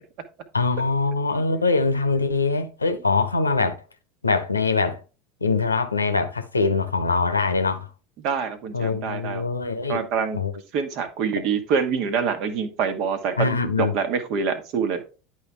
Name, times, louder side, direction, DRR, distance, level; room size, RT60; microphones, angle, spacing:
voice 1, 0.5-3.7 4.2-5.0 5.4-7.9 8.7-10.1 10.3-10.5 13.4-13.9, left 4 dB, 80° left, 0.8 m, -23 dB
voice 2, 8.2-9.4 9.9-10.4 10.7-13.5 13.8-15.0, right 6 dB, 50° right, 1.3 m, -25 dB
10.5 x 4.7 x 3.5 m
figure-of-eight pair, 75°, 0 cm